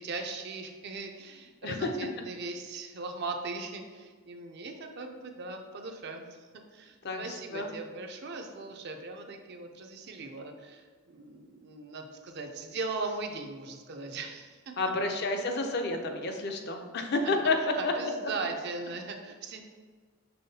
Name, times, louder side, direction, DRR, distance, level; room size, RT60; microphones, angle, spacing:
voice 1, 0.0-14.6 15.1-15.2 17.2-19.6, right 3 dB, 50° right, 4 dB, 0.4 m, -39 dB
voice 2, 14.8-17.9, left 3 dB, 50° left, 4 dB, 0.5 m, -29 dB
5.5 x 3.5 x 2.7 m, 1.5 s
head